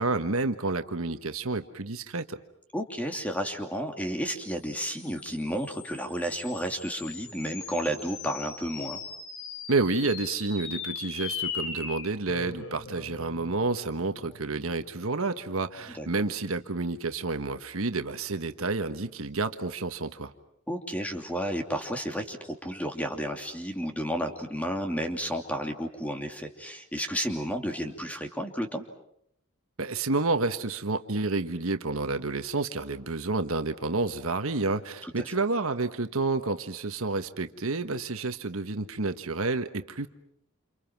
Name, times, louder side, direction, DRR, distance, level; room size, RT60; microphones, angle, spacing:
voice 1, 0.0-2.4 9.7-20.3 29.8-40.1, right 3 dB, 65° right, 8 dB, 1.3 m, -29 dB
voice 2, 2.7-9.0 16.0-16.1 20.7-28.8 35.0-35.3, equal, 5° left, 4 dB, 2.8 m, -32 dB
sound 1, 4.8-15.5, left 5 dB, 65° left, 3.6 m, -40 dB
29.0 x 29.0 x 6.0 m, 0.75 s
head